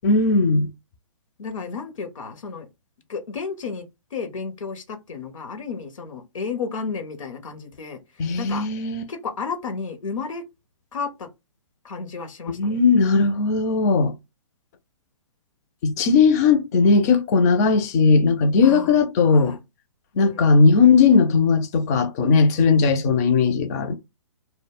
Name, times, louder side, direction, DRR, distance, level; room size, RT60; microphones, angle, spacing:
voice 1, 0.0-0.7 8.2-9.1 12.5-14.1 15.8-19.6 20.2-23.9, left 4 dB, 30° left, 0.4 m, -18 dB
voice 2, 1.4-2.7 3.1-3.8 4.1-8.0 8.4-8.7 9.1-10.4 10.9-11.3 11.8-12.8 18.6-19.0 19.3-19.6 20.1-20.6, left 5 dB, 80° left, 0.7 m, -32 dB
2.1 x 2.0 x 3.4 m
hypercardioid pair, 140°, 17 cm